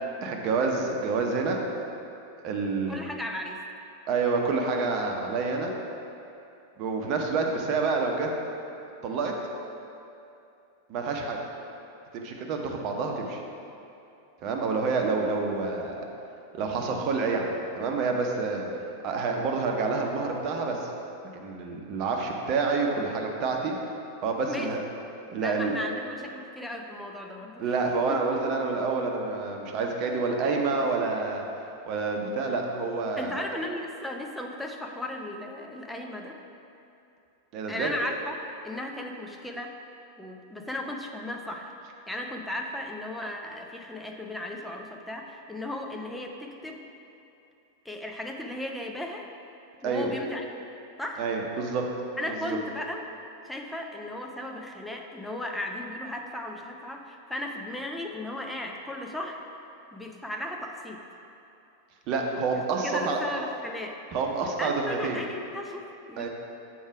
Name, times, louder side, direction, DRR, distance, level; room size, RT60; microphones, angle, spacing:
voice 1, 0.2-1.6 2.4-3.0 4.1-5.7 6.8-8.3 9.0-9.3 10.9-11.4 12.1-13.4 14.4-16.0 16.5-18.7 19.0-20.9 21.3-23.7 24.2-24.8 25.3-25.7 27.6-31.4 31.9-33.4 37.5-37.9 49.8-50.1 51.2-51.9 52.3-52.6 62.1-63.2 64.1-65.2 66.2-66.3, right 4 dB, 40° right, 2 dB, 0.8 m, -28 dB
voice 2, 2.9-3.6 24.5-24.7 25.4-27.6 28.1-28.2 33.2-36.4 37.7-38.4 38.6-39.7 40.2-41.7 42.1-46.8 47.8-49.3 49.8-50.4 51.0-51.2 52.2-53.0 53.4-59.4 59.9-61.0 62.8-64.0 64.6-66.3, left 1 dB, 5° left, 1 dB, 0.6 m, -36 dB
7.3 x 4.7 x 4.8 m, 2.7 s
figure-of-eight pair, 90°, 0 cm